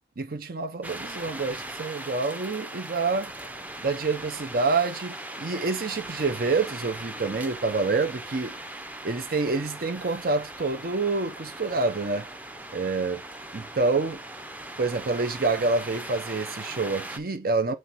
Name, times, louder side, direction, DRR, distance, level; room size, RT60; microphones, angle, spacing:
voice 1, 0.2-3.3 3.8-8.6 9.0-12.3 12.7-13.2 13.5-14.2 14.8-17.7, right 3 dB, 55° right, 0.7 m, -27 dB
sound 1, 0.8-17.2, right 1 dB, 10° right, 0.6 m, -39 dB
7.6 x 3.3 x 4.0 m
head